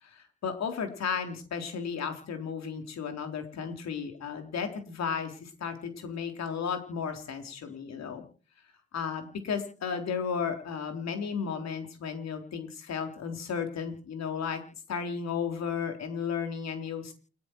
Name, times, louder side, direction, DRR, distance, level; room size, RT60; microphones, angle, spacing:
voice 1, 0.0-8.2 8.9-14.6 14.9-17.1, left 6 dB, 60° left, 5 dB, 3.9 m, -34 dB
29.5 x 9.9 x 4.6 m, 0.39 s
hypercardioid pair, 45°, 29 cm